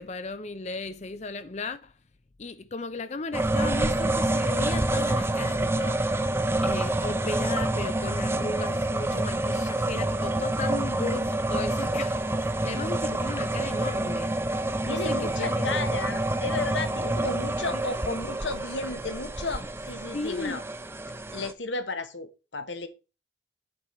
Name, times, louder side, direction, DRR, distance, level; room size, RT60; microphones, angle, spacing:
voice 1, 0.0-1.8 2.4-6.0 6.6-14.3 14.9-15.8 17.7-17.8 20.1-20.6, left 3 dB, 35° left, 0.5 m, -35 dB
sound 1, 3.3-21.5, right 1 dB, 15° right, 0.5 m, -27 dB
voice 2, 14.8-20.6 21.3-22.9, left 3 dB, 75° left, 1.2 m, -33 dB
8.8 x 4.4 x 6.6 m
head